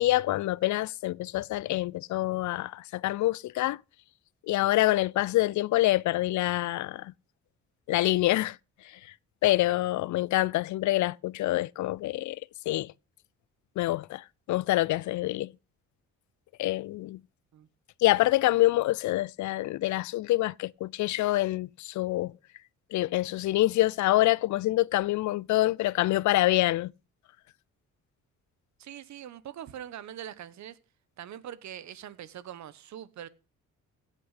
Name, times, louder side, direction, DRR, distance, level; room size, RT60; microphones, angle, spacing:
voice 1, 0.0-3.8 4.5-7.1 7.9-8.6 9.4-12.4 12.7-12.9 13.8-15.5 16.6-17.2 18.0-22.3 22.9-26.9, left 16 dB, 70° left, 0.5 m, -26 dB
voice 2, 28.8-30.8 31.2-33.3, right 10 dB, 65° right, 1.2 m, -42 dB
16.5 x 6.4 x 5.6 m
cardioid pair, 90°, 30 cm